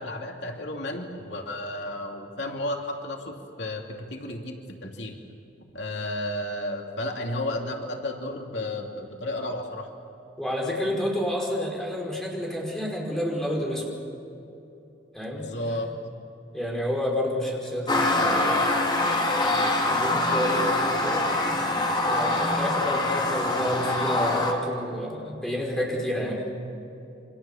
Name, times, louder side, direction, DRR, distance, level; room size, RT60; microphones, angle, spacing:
voice 1, 0.0-5.2 5.6-9.9 15.3-15.9, left 1 dB, 80° left, 2 dB, 2.7 m, -33 dB
voice 2, 10.4-13.8 15.1-15.9 16.5-18.6 19.3-21.3 22.0-26.5, equal, 5° left, -2 dB, 5.2 m, -30 dB
sound 1, 17.9-24.5, left 2 dB, 25° left, 3.0 m, -24 dB
28.0 x 25.0 x 7.2 m, 2.8 s
head